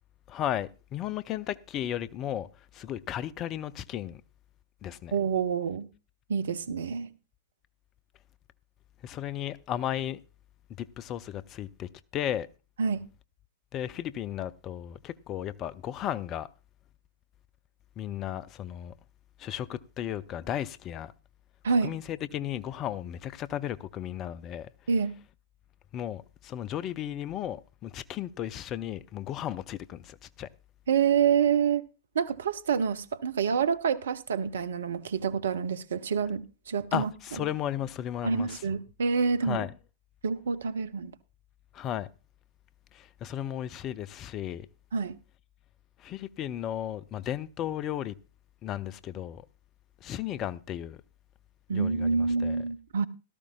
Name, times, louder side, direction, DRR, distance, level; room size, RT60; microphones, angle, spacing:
voice 1, 0.3-2.5 2.7-4.2 4.8-5.1 9.0-10.2 10.8-12.5 13.7-16.5 18.0-18.9 19.4-21.1 21.8-24.7 25.9-30.5 36.9-38.6 39.4-39.7 41.7-42.1 42.9-44.7 46.0-48.1 48.6-49.5 50.0-51.0 51.7-52.6, left 11 dB, 30° left, 0.5 m, -34 dB
voice 2, 5.1-5.9 6.3-7.1 12.8-13.0 21.6-21.9 24.9-25.1 30.9-31.8 32.1-37.1 37.4-37.5 38.2-39.7 40.2-41.1 44.9-45.2 51.7-53.1, right 6 dB, 65° right, 0.7 m, -27 dB
17.0 x 13.5 x 2.3 m
figure-of-eight pair, 100°, 0 cm